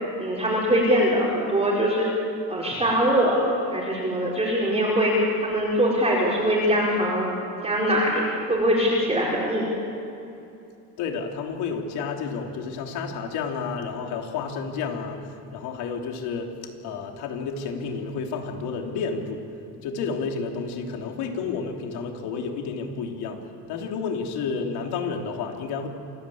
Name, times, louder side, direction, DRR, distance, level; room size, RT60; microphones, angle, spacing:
voice 1, 0.2-2.1 2.5-5.1 5.4-7.3 7.6-9.6, equal, 15° right, -5 dB, 4.9 m, -22 dB
voice 2, 11.0-16.6 16.8-19.4 19.8-25.9, left 5 dB, 85° left, 3 dB, 3.2 m, -31 dB
28.0 x 17.0 x 8.6 m, 2.7 s
cardioid pair, 145°, 38 cm